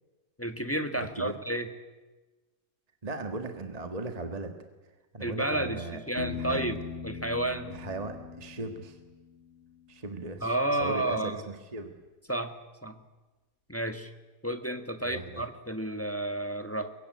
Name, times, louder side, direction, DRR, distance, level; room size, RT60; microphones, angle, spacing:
voice 1, 0.4-1.7 5.2-7.7 10.4-11.4 12.3-12.9 13.7-14.1 14.4-16.9, right 1 dB, 10° left, 8 dB, 1.2 m, -31 dB
voice 2, 1.0-1.4 3.0-4.6 5.1-6.0 6.4-6.6 7.7-9.0 9.9-10.5 10.8-11.4 11.7-11.9 15.0-15.5, right 3 dB, 25° right, 6 dB, 1.6 m, -37 dB
Piano, 6.2-9.9, left 6 dB, 85° left, 2.5 m, -40 dB
23.5 x 22.5 x 9.7 m, 1.2 s
omnidirectional pair, 1.9 m